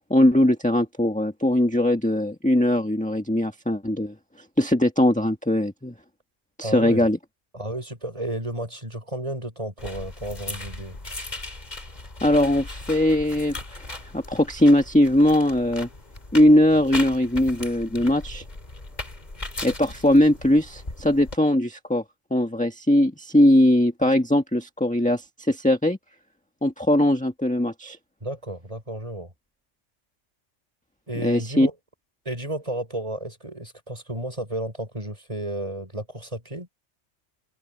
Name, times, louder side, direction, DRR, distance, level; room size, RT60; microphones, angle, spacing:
voice 1, 0.1-4.1 4.6-5.9 6.6-7.2 12.2-13.9 14.1-15.9 16.3-18.4 19.6-22.0 22.3-26.0 26.6-28.0 31.2-31.7, left 1 dB, 5° left, 1.5 m, -20 dB
voice 2, 6.6-7.1 7.5-11.0 28.2-29.3 31.1-31.7 32.2-36.7, right 1 dB, 30° right, 5.9 m, -32 dB
sound 1, 9.8-21.4, left 2 dB, 35° left, 2.6 m, -38 dB
omnidirectional pair, 1.2 m